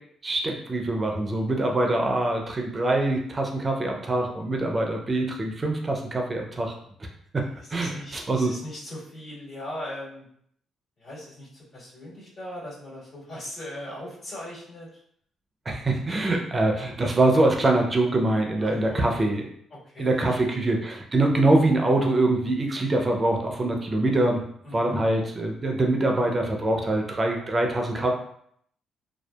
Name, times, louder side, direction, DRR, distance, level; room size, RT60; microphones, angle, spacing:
voice 1, 0.2-6.8 7.3-7.4 7.7-8.5 15.7-19.4 20.0-24.4 24.7-28.1, right 2 dB, 30° right, 2 dB, 0.4 m, -24 dB
voice 2, 7.6-10.3 11.0-15.0 18.6-19.3 19.7-20.6 24.6-25.0, left 1 dB, 55° left, -7 dB, 1.4 m, -39 dB
2.6 x 2.2 x 2.2 m, 0.67 s
cardioid pair, 90°, 0 cm